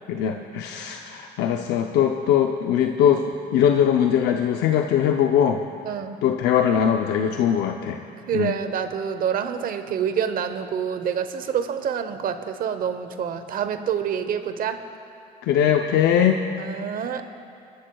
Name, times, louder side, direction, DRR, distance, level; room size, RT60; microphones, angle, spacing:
voice 1, 0.1-3.2 3.5-5.6 6.2-8.0 8.3-8.5 15.4-16.4, left 9 dB, 80° left, 3 dB, 0.6 m, -21 dB
voice 2, 5.9-6.2 8.3-14.8 16.6-17.3, right 8 dB, 55° right, 9 dB, 0.9 m, -27 dB
27.0 x 13.0 x 2.3 m, 2.5 s
cardioid pair, 110°, 17 cm